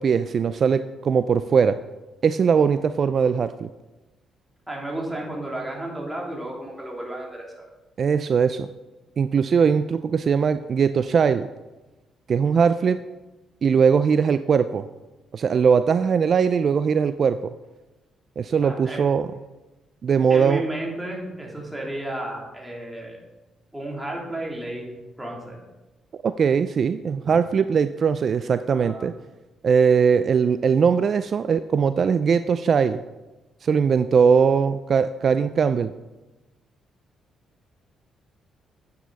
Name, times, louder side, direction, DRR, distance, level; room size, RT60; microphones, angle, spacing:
voice 1, 0.0-1.8 2.2-3.7 8.0-8.7 9.2-11.5 12.3-13.0 13.6-14.9 15.3-17.5 18.4-19.3 20.0-20.6 26.2-29.1 29.6-33.0 33.6-35.9, right 6 dB, 50° right, 12 dB, 0.3 m, -20 dB
voice 2, 4.7-7.6 9.2-9.3 18.6-19.0 20.3-23.2 23.7-25.6 27.2-27.3 28.7-29.1, right 1 dB, 10° right, -3 dB, 3.0 m, -33 dB
9.4 x 8.4 x 4.0 m, 1.1 s
cardioid pair, 90°, 0 cm